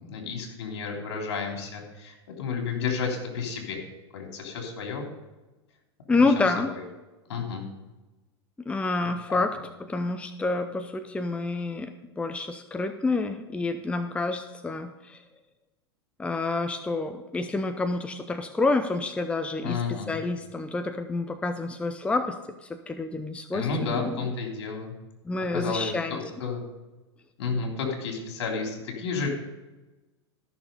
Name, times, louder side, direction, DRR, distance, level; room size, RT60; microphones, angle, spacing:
voice 1, 0.1-3.8 4.1-5.1 6.2-6.8 7.3-7.7 9.3-9.4 19.6-20.1 23.5-25.0 25.5-26.6 27.4-29.3, left 5 dB, 70° left, 1 dB, 3.4 m, -31 dB
voice 2, 6.1-6.7 8.7-15.2 16.2-22.4 22.7-24.3 25.3-26.2, left 3 dB, 10° left, 8 dB, 0.7 m, -28 dB
14.0 x 6.6 x 5.5 m, 1.1 s
hypercardioid pair, 105°, 15 cm